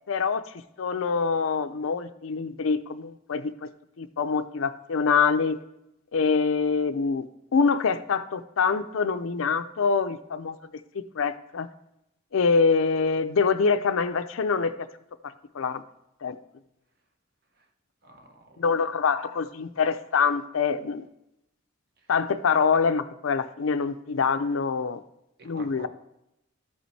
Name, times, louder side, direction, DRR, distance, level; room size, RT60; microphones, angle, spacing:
voice 1, 0.1-0.5 0.8-3.7 4.0-5.6 6.1-7.2 7.5-10.6 11.2-11.7 12.3-14.7 15.5-15.8 16.2-16.4 18.6-21.0 22.1-25.0 25.4-25.9, left 5 dB, 80° left, 11 dB, 0.5 m, -25 dB
voice 2, 18.0-18.6 25.4-25.9, right 2 dB, 50° right, 5 dB, 1.0 m, -47 dB
13.5 x 5.2 x 3.3 m, 0.84 s
head